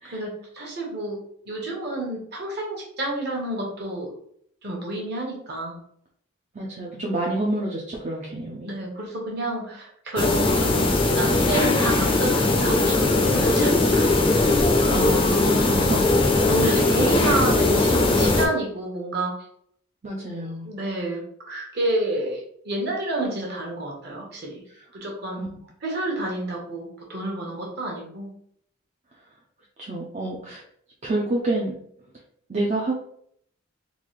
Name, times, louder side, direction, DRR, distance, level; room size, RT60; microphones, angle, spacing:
voice 1, 0.1-1.2 1.5-4.1 4.6-5.8 8.6-10.9 11.1-14.3 16.4-19.4 20.2-24.6 24.9-25.4 25.8-28.3, right 1 dB, 50° right, -2 dB, 1.1 m, -29 dB
voice 2, 6.5-8.7 14.9-16.1 16.6-16.8 20.0-20.7 25.4-25.5 29.8-30.6 31.0-31.8 32.5-33.0, right 1 dB, 35° right, -3 dB, 0.5 m, -28 dB
sound 1, 10.2-18.5, left 2 dB, 25° left, 0.5 m, -20 dB
3.8 x 2.4 x 3.1 m, 0.67 s
head